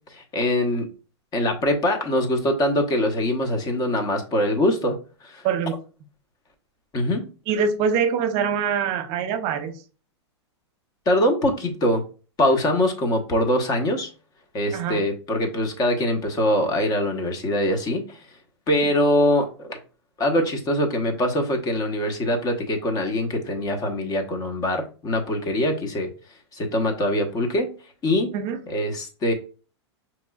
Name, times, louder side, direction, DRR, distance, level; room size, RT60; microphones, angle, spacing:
voice 1, 0.1-0.9 1.3-5.0 5.2-5.4 6.9-7.3 11.1-12.0 12.4-14.1 14.5-18.2 18.7-19.8 20.2-26.1 26.5-27.7 28.0-28.3 28.7-29.3, left 1 dB, 25° left, 1.0 m, -23 dB
voice 2, 7.5-9.8 14.7-15.0 28.3-28.6, right 6 dB, 40° right, 0.8 m, -24 dB
5.2 x 3.1 x 2.3 m
hypercardioid pair, 120°, 15 cm